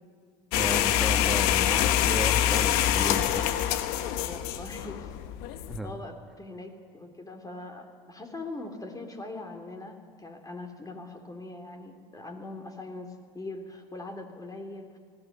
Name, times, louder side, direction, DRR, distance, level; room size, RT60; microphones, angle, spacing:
sound 1, 0.5-5.8, left 11 dB, 70° left, 1.1 m, -25 dB
voice 1, 0.5-3.5 5.7-6.0, right 1 dB, ahead, 5 dB, 2.3 m, -34 dB
voice 2, 4.0-5.1 5.8-15.0, left 2 dB, 20° left, 4 dB, 3.4 m, -41 dB
19.0 x 15.5 x 9.0 m, 2.1 s
hypercardioid pair, 65°, 17 cm